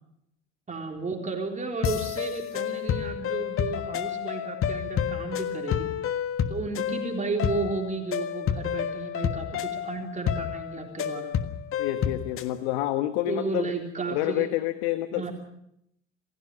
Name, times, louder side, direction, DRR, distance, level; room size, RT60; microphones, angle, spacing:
voice 1, 0.7-5.9 6.5-11.3 13.3-14.5 15.2-15.3, right 3 dB, 20° right, 2 dB, 3.8 m, -33 dB
sound 1, 1.8-12.5, left 9 dB, 35° left, 1.6 m, -30 dB
voice 2, 11.8-13.7 14.1-15.3, left 14 dB, 55° left, 11 dB, 1.3 m, -28 dB
27.5 x 16.5 x 6.7 m, 0.78 s
figure-of-eight pair, 65°, 38 cm